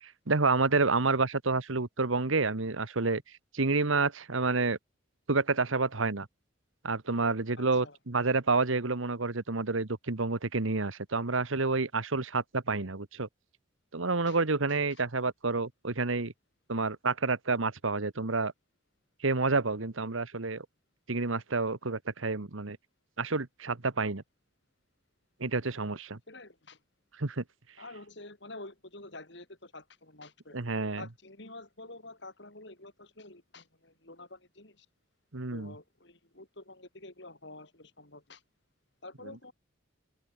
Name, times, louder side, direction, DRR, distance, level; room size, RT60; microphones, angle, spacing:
voice 1, 0.0-3.2 3.5-4.8 5.3-6.3 6.8-13.3 13.9-16.3 16.7-18.5 19.2-20.6 21.1-22.8 23.2-24.2 25.4-26.2 27.2-27.4 30.5-31.0 35.3-35.7, right 3 dB, 80° right, 1.4 m, -29 dB
voice 2, 7.6-8.0 14.3-14.4 26.3-26.8 27.8-30.6 30.9-34.9 35.5-38.4 39.0-39.5, left 2 dB, 60° left, 4.7 m, -48 dB
open air
head